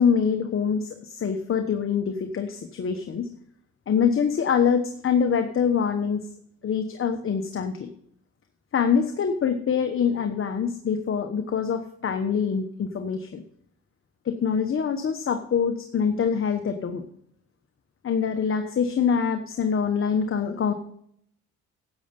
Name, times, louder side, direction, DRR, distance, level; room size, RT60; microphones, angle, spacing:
voice 1, 0.0-3.3 3.9-6.2 6.6-7.9 8.7-13.4 14.2-17.0 18.0-20.7, left 6 dB, 45° left, 6 dB, 1.2 m, -24 dB
11.0 x 7.9 x 5.3 m, 0.67 s
cardioid pair, 90°, 30 cm